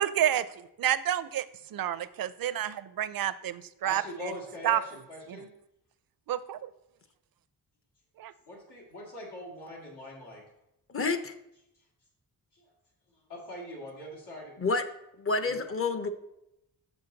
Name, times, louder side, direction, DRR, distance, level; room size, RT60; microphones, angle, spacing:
voice 1, 0.0-1.5 1.7-4.3 4.6-4.8 5.3-5.4 6.3-6.7 8.2-8.3, right 11 dB, 60° right, 16 dB, 0.5 m, -29 dB
voice 2, 3.8-4.8 5.1-5.5 8.5-10.4 13.3-14.5 15.5-15.6, left 1 dB, 90° left, -3 dB, 2.3 m, -42 dB
voice 3, 10.9-11.4 14.6-14.8 15.2-16.1, left 3 dB, 35° left, 10 dB, 0.6 m, -29 dB
6.0 x 5.8 x 3.9 m, 0.83 s
cardioid pair, 90°, 39 cm